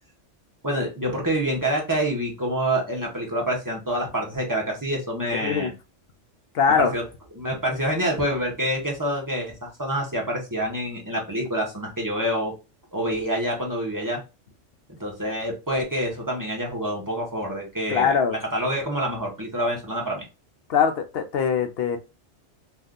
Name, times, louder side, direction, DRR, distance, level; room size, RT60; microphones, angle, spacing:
voice 1, 0.6-5.7 6.8-7.0 7.4-12.5 12.9-14.2 15.0-18.1 18.5-20.3, right 1 dB, 20° right, -1 dB, 0.8 m, -27 dB
voice 2, 5.4-5.7 6.5-6.9 17.9-18.4 20.7-22.0, left 7 dB, 60° left, 7 dB, 0.7 m, -22 dB
2.7 x 2.4 x 3.5 m, 0.28 s
omnidirectional pair, 1.3 m